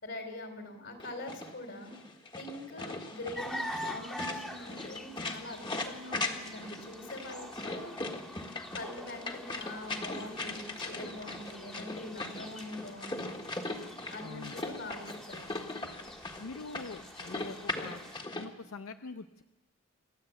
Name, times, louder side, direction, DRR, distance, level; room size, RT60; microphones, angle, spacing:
voice 1, 0.0-1.9 2.4-8.1 8.7-13.3 14.1-15.5, left 2 dB, 55° left, 4 dB, 4.0 m, -43 dB
sound 1, 1.0-18.4, left 2 dB, 20° left, 1.6 m, -39 dB
sound 2, 3.3-18.2, equal, 5° left, 1.7 m, -46 dB
voice 2, 14.2-14.6 16.4-18.0 18.3-19.4, left 4 dB, 85° left, 9 dB, 0.6 m, -44 dB
28.5 x 12.0 x 8.1 m, 1.1 s
head